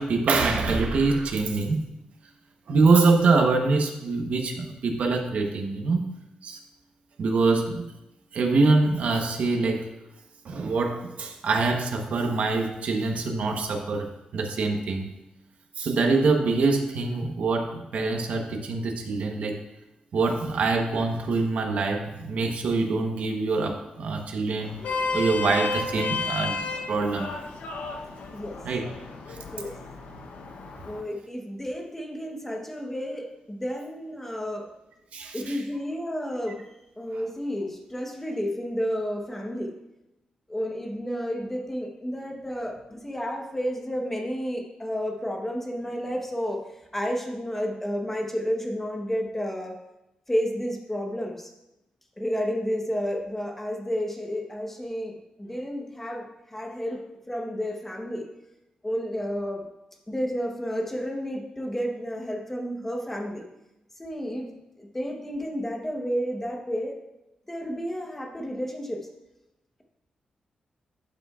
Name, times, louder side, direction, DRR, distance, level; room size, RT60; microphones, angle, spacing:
voice 1, 0.0-1.8 2.7-6.0 6.4-6.6 7.2-7.9 8.3-9.9 10.4-15.1 15.8-19.6 20.1-24.8 25.1-26.6 26.9-27.3 28.6-28.9 29.3-29.4 35.1-35.6 37.1-37.2, right 3 dB, 70° right, 3 dB, 1.1 m, -24 dB
Vehicle horn car horn honking, 24.6-31.0, left 3 dB, 85° left, 0.9 m, -32 dB
voice 2, 30.8-34.7 35.3-39.8 40.5-46.6 46.9-49.7 50.3-51.5 52.2-58.3 58.8-59.7 60.1-63.4 64.0-64.5 64.8-67.0 67.5-69.0, equal, 10° left, 2 dB, 1.0 m, -31 dB
11.5 x 5.9 x 2.4 m, 0.92 s
wide cardioid pair, 130°, 2 cm